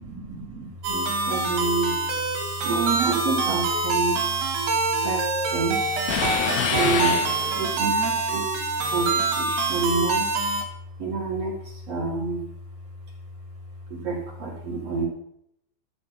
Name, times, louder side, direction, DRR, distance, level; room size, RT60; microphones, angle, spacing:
voice 1, 0.0-2.0 2.6-4.3 5.0-5.8 6.7-7.2 7.6-10.3 11.0-12.5 13.9-15.1, right 4 dB, 40° right, -1 dB, 2.7 m, -28 dB
sound 1, 0.8-10.6, right 3 dB, 60° right, 4.2 m, -25 dB
sound 2, 6.1-7.9, left 8 dB, 90° left, 3.8 m, -26 dB
13.0 x 8.7 x 6.0 m, 0.75 s
omnidirectional pair, 5.5 m